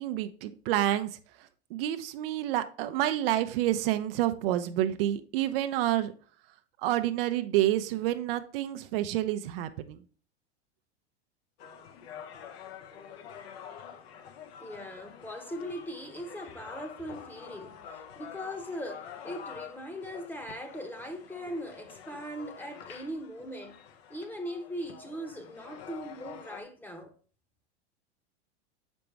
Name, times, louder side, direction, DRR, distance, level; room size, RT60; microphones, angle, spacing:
voice 1, 0.0-6.1 6.8-10.0, right 13 dB, 60° right, 0.7 m, -29 dB
sound 1, 11.6-26.6, left 8 dB, 65° left, 1.0 m, -47 dB
voice 2, 14.6-23.8 24.1-27.1, equal, 5° left, 1.0 m, -40 dB
6.7 x 5.2 x 3.3 m
hypercardioid pair, 95°, 33 cm